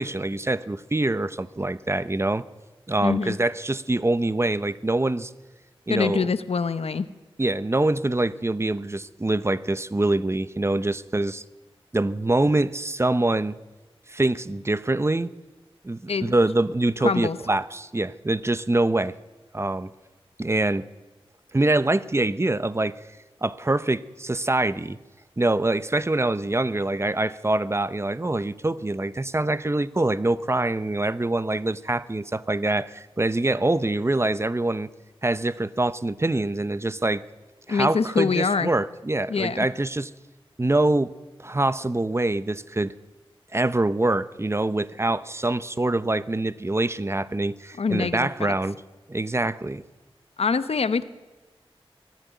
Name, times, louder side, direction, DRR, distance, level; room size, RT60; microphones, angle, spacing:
voice 1, 0.0-2.5 2.9-5.3 5.9-6.3 7.4-11.4 11.9-13.6 14.1-15.3 15.8-19.2 19.5-19.9 20.4-20.9 21.5-23.0 23.4-25.0 25.4-34.9 35.2-37.2 37.7-40.1 40.6-41.1 41.4-42.9 43.5-48.8 49.1-49.8, right 2 dB, 25° right, 15 dB, 0.8 m, -24 dB
voice 2, 3.0-3.4 5.9-7.1 16.1-16.3 17.0-17.4 37.7-38.7 39.3-39.7 47.8-48.5 50.4-51.0, left 5 dB, 85° left, 13 dB, 0.9 m, -24 dB
23.0 x 15.5 x 9.2 m, 1.2 s
wide cardioid pair, 75°, 10 cm